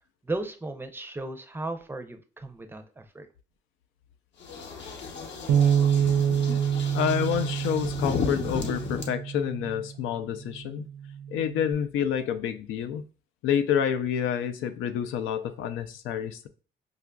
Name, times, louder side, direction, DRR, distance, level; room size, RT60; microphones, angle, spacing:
voice 1, 0.2-3.3, right 2 dB, 10° right, 6 dB, 0.5 m, -35 dB
sound 1, 4.4-9.0, left 5 dB, 65° left, 0.8 m, -35 dB
Bass guitar, 5.5-9.9 10.6-11.7, right 8 dB, 85° right, 0.4 m, -27 dB
voice 2, 6.9-10.9 11.3-13.0 13.4-16.5, left 8 dB, 90° left, 8 dB, 0.4 m, -28 dB
4.9 x 2.4 x 2.2 m, 0.37 s
cardioid pair, 90°, 20 cm